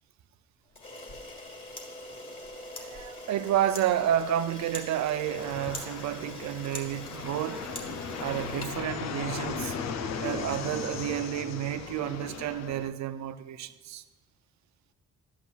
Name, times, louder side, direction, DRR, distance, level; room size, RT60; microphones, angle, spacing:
Camera, 0.7-9.5, left 2 dB, 30° left, 1.7 m, -43 dB
voice 1, 2.6-7.7 8.2-10.0 10.2-14.0, right 11 dB, 65° right, 0.5 m, -30 dB
Fixed-wing aircraft airplane, 5.3-12.9, left 5 dB, 65° left, 0.6 m, -37 dB
11.0 x 8.3 x 2.4 m
cardioid pair, 90°, 30 cm